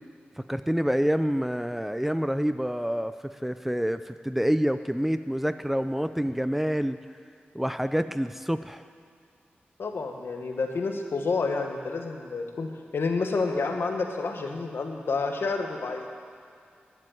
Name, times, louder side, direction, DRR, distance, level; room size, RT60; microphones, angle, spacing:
voice 1, 0.5-3.1 3.4-7.0 7.5-8.8, equal, 5° right, 11 dB, 0.4 m, -27 dB
voice 2, 9.8-16.1, left 4 dB, 70° left, 3 dB, 1.3 m, -29 dB
11.0 x 7.6 x 9.4 m, 2.3 s
cardioid pair, 55°, 4 cm